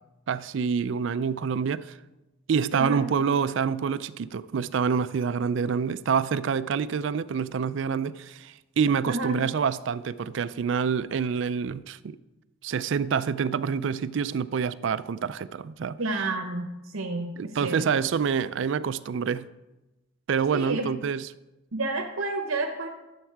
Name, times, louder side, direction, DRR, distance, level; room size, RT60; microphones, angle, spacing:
voice 1, 0.3-2.0 2.5-12.2 12.6-16.0 17.4-19.5 20.3-21.3, right 6 dB, 60° right, 0.4 m, -27 dB
voice 2, 2.7-3.1 9.0-9.4 16.0-17.8 20.5-20.9 21.7-22.9, right 2 dB, 80° right, 0.9 m, -30 dB
12.5 x 7.3 x 4.6 m
head